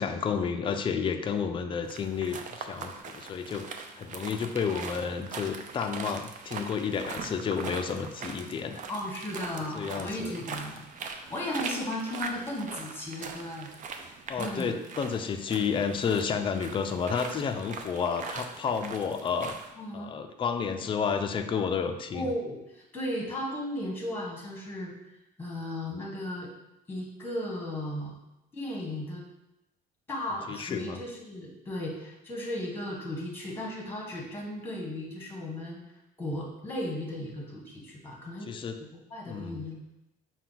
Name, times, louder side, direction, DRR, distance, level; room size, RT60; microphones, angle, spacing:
voice 1, 0.0-8.8 9.7-10.3 14.3-19.6 19.9-22.3 30.5-31.0 38.5-38.8 39.3-39.6, left 6 dB, 30° left, 6 dB, 0.4 m, -31 dB
sound 1, 1.8-19.7, right 5 dB, 50° right, 0.5 m, -41 dB
voice 2, 8.9-13.7 14.4-14.7 19.8-20.2 22.1-24.9 25.4-26.5 26.9-28.2 28.5-29.2 30.1-35.8 36.2-38.5 38.8-39.8, left 1 dB, 15° left, -1 dB, 1.2 m, -35 dB
5.5 x 2.2 x 3.9 m, 0.90 s
cardioid pair, 110°, 17 cm